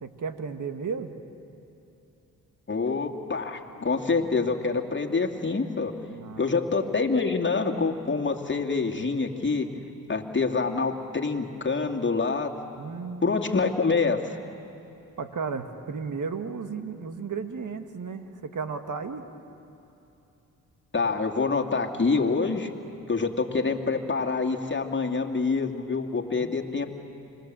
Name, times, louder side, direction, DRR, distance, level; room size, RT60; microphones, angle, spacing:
voice 1, 0.0-1.1 6.1-6.5 12.8-13.4 15.2-19.2 26.4-26.5, right 5 dB, 55° right, 7 dB, 1.9 m, -34 dB
voice 2, 2.7-5.9 6.4-9.7 10.1-12.5 13.2-14.4 20.9-22.7 23.1-26.9, left 4 dB, 30° left, 2 dB, 2.5 m, -26 dB
26.0 x 21.5 x 7.7 m, 2.9 s
supercardioid pair, 55°, 37 cm